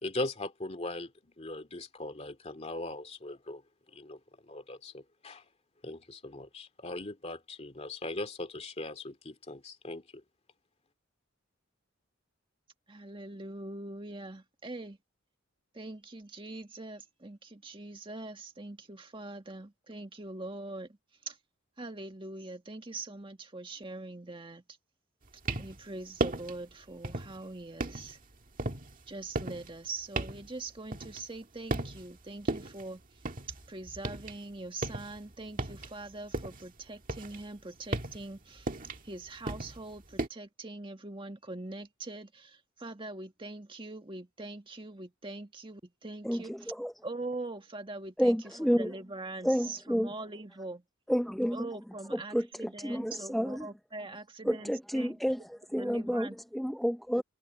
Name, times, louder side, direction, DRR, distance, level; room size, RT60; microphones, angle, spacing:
voice 1, 0.0-3.6 3.9-5.5 5.8-10.2, left 2 dB, 30° left, 2.5 m, -40 dB
voice 2, 12.9-15.0 15.7-20.9 21.3-21.4 21.8-24.6 25.6-28.2 29.1-33.0 33.7-38.7 39.0-46.7 47.0-48.4 48.8-50.8 51.5-55.2 55.8-56.4, right 2 dB, 25° right, 1.8 m, -43 dB
sound 1, 25.2-25.8 26.2-26.6 27.0-27.4 27.8-31.4 31.7-32.2 32.5-34.4 34.7-36.7 37.0-40.3, right 2 dB, 40° right, 1.8 m, -36 dB
voice 3, 46.2-46.9 48.2-48.9 49.4-50.1 51.1-51.7 52.1-53.7 54.4-55.4 55.7-57.2, equal, ahead, 0.6 m, -30 dB
head